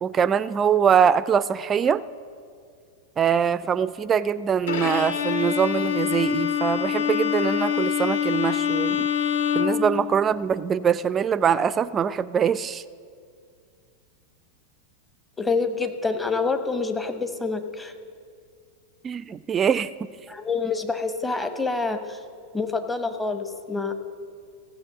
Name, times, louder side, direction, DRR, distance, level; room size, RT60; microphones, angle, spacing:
voice 1, 0.0-2.0 3.2-9.1 9.5-12.8 19.0-19.9, right 7 dB, 25° right, 17 dB, 0.3 m, -23 dB
Bowed string instrument, 4.7-10.6, left 8 dB, 60° left, 0.8 m, -25 dB
voice 2, 15.4-17.9 20.3-22.2 22.5-23.9, left 4 dB, 10° left, 8 dB, 0.8 m, -27 dB
15.0 x 6.5 x 7.1 m, 2.2 s
figure-of-eight pair, 90°, 0 cm